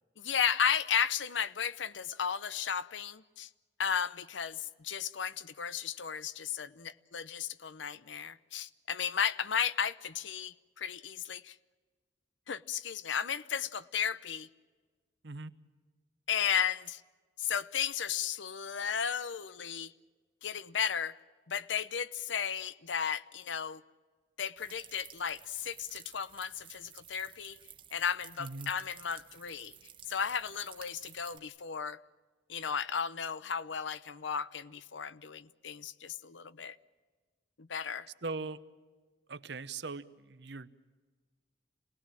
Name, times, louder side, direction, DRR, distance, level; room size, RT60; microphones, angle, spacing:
voice 1, 0.2-3.5 3.8-11.5 12.5-14.5 16.3-17.0 17.4-19.9 20.4-21.2 21.5-23.8 24.4-27.6 27.9-29.7 30.1-32.0 32.5-36.8 37.6-38.1, left 7 dB, 75° left, 0.7 m, -34 dB
sound 1, 24.6-31.4, right 9 dB, 25° right, 1.0 m, -53 dB
voice 2, 28.4-28.7 38.2-38.6 39.3-40.7, right 3 dB, 65° right, 0.9 m, -40 dB
28.0 x 19.0 x 7.5 m
head